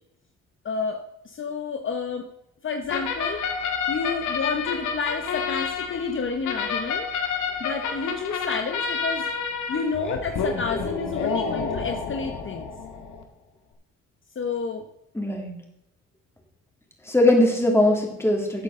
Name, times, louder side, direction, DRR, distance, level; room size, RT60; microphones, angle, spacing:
voice 1, 0.6-2.3 2.6-3.4 3.9-7.1 7.6-9.3 9.7-12.7 14.4-14.9, left 5 dB, 40° left, 5 dB, 1.0 m, -30 dB
sound 1, 2.9-13.2, left 5 dB, 75° left, 1.9 m, -29 dB
voice 2, 15.1-15.5 17.1-18.6, left 1 dB, 10° left, 0 dB, 3.1 m, -20 dB
13.0 x 8.2 x 3.8 m, 0.83 s
cardioid pair, 90°, 30 cm